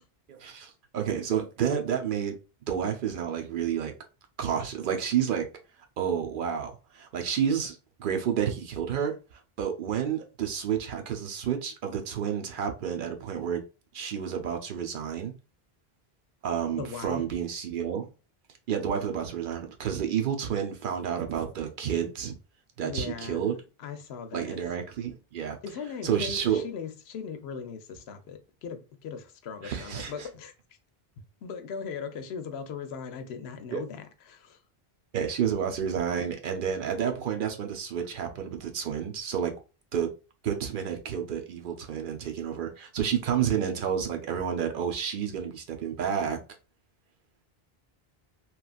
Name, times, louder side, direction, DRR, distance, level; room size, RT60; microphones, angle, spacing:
voice 1, 0.3-2.3 2.7-3.9 4.4-5.5 6.0-13.6 13.9-15.3 16.4-18.1 18.7-22.3 22.8-23.6 24.3-25.6 26.0-26.6 29.6-30.3 33.7-33.8 35.1-39.5 39.9-40.1 40.4-46.4, right 8 dB, 60° right, 0.7 m, -30 dB
voice 2, 16.8-17.2 22.8-23.4 23.8-24.6 25.6-30.5 31.4-34.6, left 6 dB, 85° left, 0.8 m, -39 dB
3.0 x 2.4 x 2.3 m
omnidirectional pair, 1.0 m